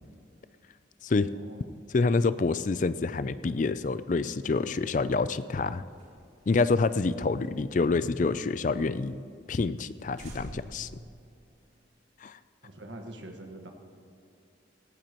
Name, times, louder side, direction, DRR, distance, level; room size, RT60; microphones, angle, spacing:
voice 1, 1.2-1.7 12.6-13.7, right 1 dB, 75° right, 3 dB, 1.5 m, -44 dB
voice 2, 1.9-5.8 6.5-9.2 9.5-11.0 12.2-12.4, left 3 dB, 40° left, 14 dB, 0.4 m, -27 dB
sound 1, 5.9-8.7 9.0-9.1 9.4-9.5 9.8-9.9 10.2-11.9, equal, 40° right, 3.5 m, -48 dB
17.5 x 16.0 x 3.0 m, 2.5 s
head